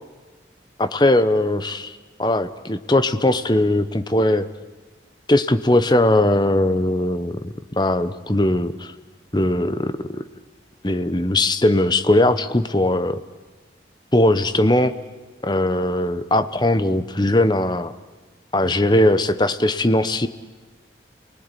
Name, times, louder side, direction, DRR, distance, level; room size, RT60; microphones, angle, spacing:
voice 1, 0.8-4.5 5.3-8.9 9.3-10.2 10.8-13.2 14.1-14.9 15.4-17.9 18.5-20.3, left 1 dB, 25° left, 11 dB, 0.9 m, -19 dB
29.5 x 20.0 x 9.9 m, 1.3 s
head